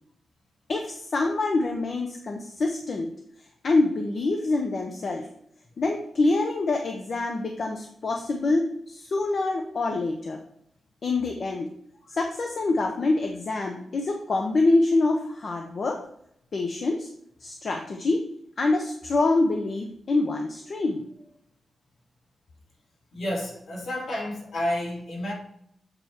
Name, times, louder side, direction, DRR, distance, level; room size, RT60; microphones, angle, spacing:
voice 1, 0.7-3.1 3.6-5.3 5.8-10.4 11.0-11.7 12.1-16.0 16.5-17.1 17.4-18.3 18.6-21.0, left 2 dB, 40° left, 0.7 m, -25 dB
voice 2, 23.1-25.3, left 1 dB, 60° left, 2.9 m, -30 dB
7.8 x 4.2 x 4.4 m
wide cardioid pair, 180°, 0 cm